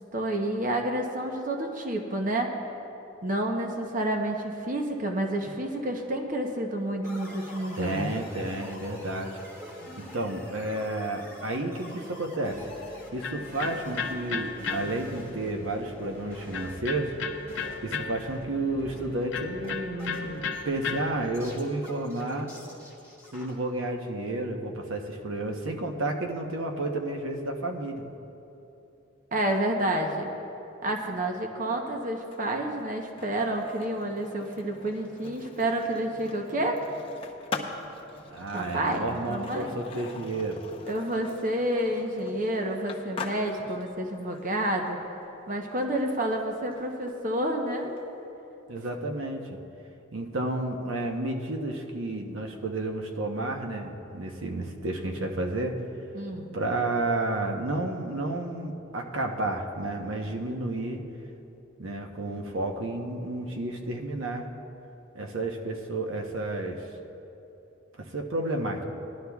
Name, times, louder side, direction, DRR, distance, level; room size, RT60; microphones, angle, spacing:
voice 1, 0.1-2.6 3.2-8.2 29.3-30.3 30.8-36.8 38.5-39.7 40.9-45.0 45.5-47.9 56.1-56.5, right 1 dB, 40° right, 2 dB, 0.8 m, -29 dB
sound 1, 7.0-18.5 18.8-23.5, left 1 dB, 15° right, 1.8 m, -46 dB
voice 2, 7.8-9.4 10.0-12.6 13.1-17.2 17.8-22.5 23.3-28.0 38.3-40.6 48.7-49.6 50.1-55.8 56.5-61.0 61.8-64.5 65.1-66.8 68.0-68.8, right 2 dB, 90° right, 3 dB, 0.9 m, -31 dB
Electric guitar, 12.5-21.6, left 5 dB, 70° left, 0.7 m, -37 dB
Skateboard, 32.2-48.0, left 4 dB, 30° left, 0.8 m, -43 dB
19.0 x 11.5 x 2.3 m, 3.0 s
head